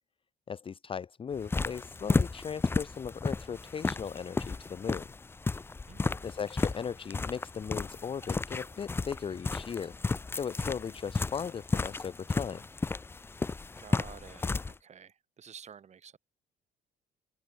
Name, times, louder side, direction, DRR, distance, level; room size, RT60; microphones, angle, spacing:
voice 1, 0.5-5.1 6.2-9.9 10.3-12.7, left 7 dB, 30° left, 0.9 m, -37 dB
sound 1, 1.3-14.7, left 3 dB, 15° left, 0.4 m, -33 dB
voice 2, 5.9-6.3 13.8-16.2, right 7 dB, 40° right, 5.9 m, -51 dB
open air
cardioid pair, 110°, 17 cm